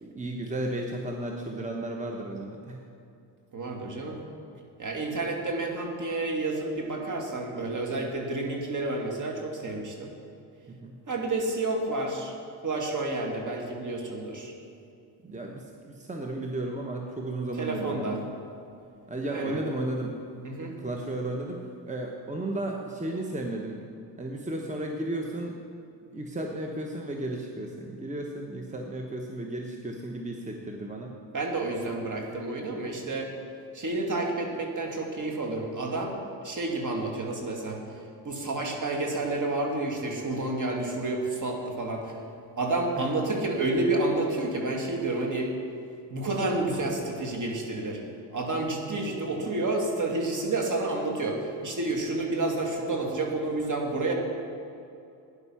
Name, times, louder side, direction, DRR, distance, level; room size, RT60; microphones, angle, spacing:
voice 1, 0.0-2.8 8.0-8.1 10.7-10.9 15.2-18.3 19.1-20.1 20.8-23.8 24.2-25.6 26.1-31.1 42.9-43.1, right 1 dB, 15° right, 1 dB, 1.2 m, -34 dB
voice 2, 3.5-4.2 4.8-10.1 11.1-12.3 12.6-14.5 17.6-18.2 19.3-19.6 20.4-20.8 31.3-33.3 33.7-37.8 38.2-42.2 42.6-45.5 46.1-48.0 48.3-54.1, right 2 dB, 40° right, 1 dB, 2.5 m, -30 dB
12.0 x 9.8 x 5.8 m, 2.6 s
supercardioid pair, 75°, 47 cm